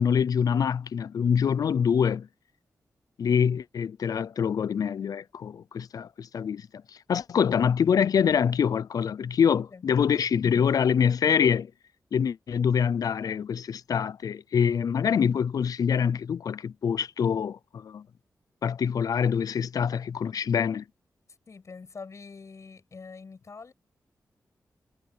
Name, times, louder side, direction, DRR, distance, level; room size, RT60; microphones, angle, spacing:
voice 1, 0.0-2.3 3.2-6.8 7.1-11.7 12.1-18.0 18.6-20.8, left 7 dB, 75° left, 0.5 m, -25 dB
voice 2, 21.5-23.7, left 4 dB, 55° left, 7.5 m, -44 dB
cardioid pair, 80°, 6 cm